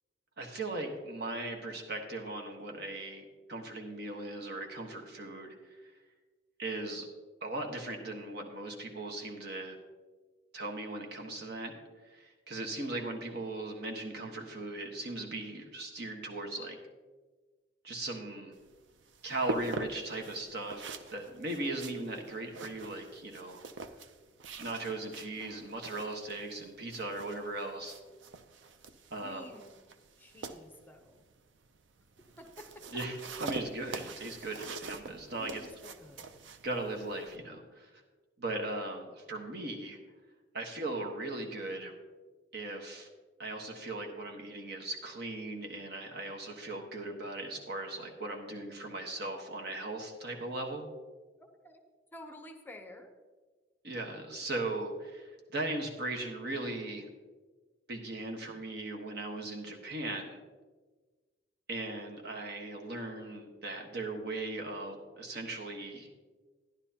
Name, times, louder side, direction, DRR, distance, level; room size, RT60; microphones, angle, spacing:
voice 1, 0.4-5.9 6.6-7.1 7.4-9.8 10.5-11.7 12.0-16.8 17.8-18.5 19.2-23.6 24.6-27.9 29.1-29.4 32.9-35.7 36.6-37.9 38.4-40.0 40.5-41.9 42.5-43.1 43.4-50.9 53.8-57.1 57.9-60.4 61.7-66.3, right 2 dB, 60° right, 2 dB, 1.3 m, -38 dB
sound 1, 18.5-37.4, right 3 dB, 80° right, 0.6 m, -44 dB
voice 2, 29.2-29.8 30.2-31.2 32.4-32.8 35.4-36.3 51.4-51.8 52.1-53.1, left 1 dB, 10° left, 4 dB, 0.8 m, -50 dB
12.5 x 11.0 x 2.9 m, 1.3 s
head